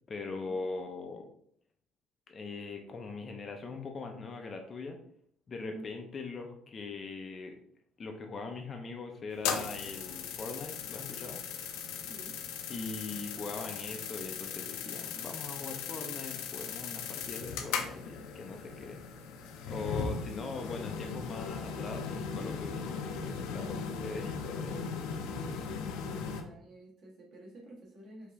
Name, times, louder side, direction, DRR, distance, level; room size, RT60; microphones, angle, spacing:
voice 1, 0.1-1.3 2.3-5.0 5.5-7.6 8.0-11.4 12.7-19.0 19.7-24.9 26.1-26.2, left 3 dB, 25° left, 4 dB, 0.4 m, -41 dB
voice 2, 5.6-5.9 12.0-12.4 23.7-24.0 25.9-28.3, right 1 dB, 45° right, -3 dB, 1.5 m, -51 dB
sound 1, 9.3-26.4, left 6 dB, 85° left, 0.6 m, -38 dB
5.0 x 2.7 x 3.4 m, 0.65 s
cardioid pair, 170°, 0 cm